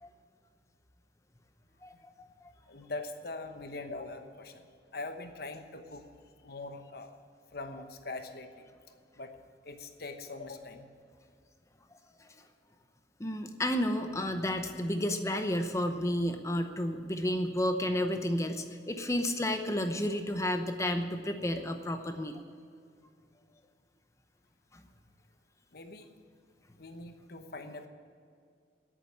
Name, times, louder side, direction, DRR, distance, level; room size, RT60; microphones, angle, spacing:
voice 1, 2.7-4.7 4.9-6.1 6.4-7.1 7.5-8.7 9.2-9.3 9.6-10.9 25.7-26.1 26.8-27.9, left 3 dB, 60° left, 7 dB, 1.0 m, -42 dB
voice 2, 13.2-22.4 24.7-24.8, left 1 dB, 15° left, 6 dB, 0.8 m, -31 dB
10.5 x 8.6 x 9.4 m, 2.3 s
head